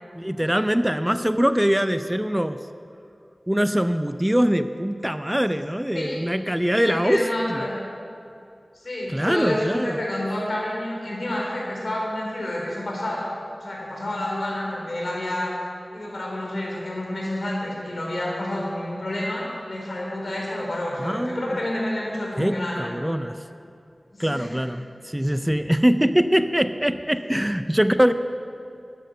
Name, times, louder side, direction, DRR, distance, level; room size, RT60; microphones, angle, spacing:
voice 1, 0.2-2.6 3.5-7.2 7.5-7.6 9.1-10.0 21.0-21.5 22.4-23.4 24.2-28.1, equal, 10° right, 10 dB, 0.5 m, -23 dB
voice 2, 6.7-7.7 8.8-13.3 13.6-15.5 15.9-23.0 24.2-24.5, left 1 dB, 75° left, -3 dB, 4.1 m, -29 dB
13.0 x 10.0 x 6.7 m, 2.5 s
wide cardioid pair, 50°, 0 cm